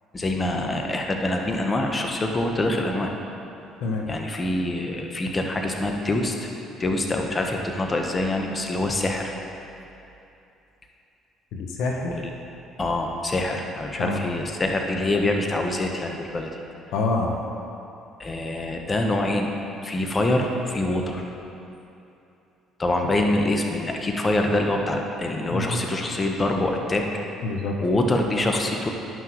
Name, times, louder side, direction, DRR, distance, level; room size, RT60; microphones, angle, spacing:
voice 1, 0.1-3.1 4.1-6.5 6.8-9.3 12.1-12.2 12.8-16.5 18.2-19.5 19.8-21.2 22.8-27.0 27.8-28.9, left 2 dB, 30° left, 2 dB, 0.9 m, -25 dB
voice 2, 11.5-12.2 14.0-14.2 16.9-17.3 23.0-23.2 25.5-25.8 27.4-27.7, left 3 dB, 75° left, 1 dB, 0.8 m, -27 dB
11.0 x 6.0 x 3.0 m, 2.8 s
supercardioid pair, 70°, 0 cm